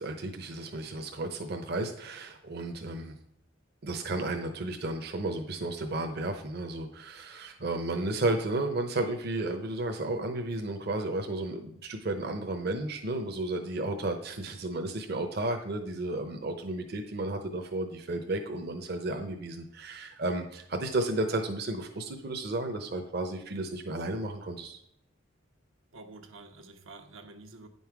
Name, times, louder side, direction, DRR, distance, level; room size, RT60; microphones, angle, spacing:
voice 1, 0.0-3.1 3.8-24.8, right 2 dB, 55° right, 5 dB, 0.8 m, -33 dB
voice 2, 25.9-27.7, right 3 dB, 90° right, 5 dB, 1.2 m, -49 dB
9.7 x 5.5 x 4.7 m, 0.74 s
head